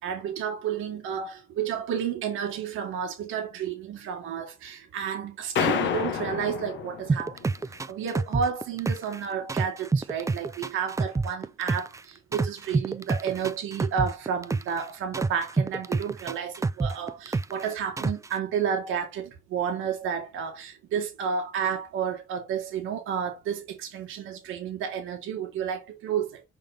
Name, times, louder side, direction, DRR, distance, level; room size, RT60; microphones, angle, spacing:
voice 1, 0.0-7.5 7.9-26.4, right 7 dB, 90° right, 1.7 m, -31 dB
sound 1, 5.6-7.5, left 8 dB, 70° left, 1.0 m, -29 dB
sound 2, 7.1-9.2 9.5-12.0 12.3-14.8 15.1-17.6 18.0-18.3, right 3 dB, 15° right, 0.4 m, -27 dB
5.4 x 5.2 x 3.4 m
cardioid pair, 90°, 20 cm